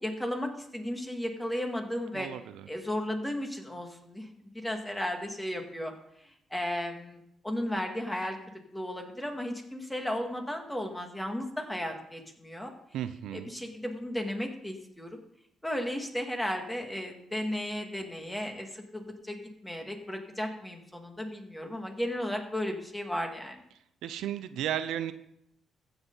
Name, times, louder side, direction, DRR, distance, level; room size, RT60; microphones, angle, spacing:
voice 1, 0.0-2.3 2.7-4.3 4.5-5.9 6.5-8.4 8.7-12.7 13.3-15.2 15.6-23.6, left 1 dB, 10° left, 3 dB, 2.0 m, -34 dB
voice 2, 2.1-2.7 12.9-13.5 24.0-25.1, right 11 dB, 85° right, 11 dB, 0.6 m, -34 dB
15.0 x 8.0 x 4.0 m, 0.76 s
cardioid pair, 90°, 0 cm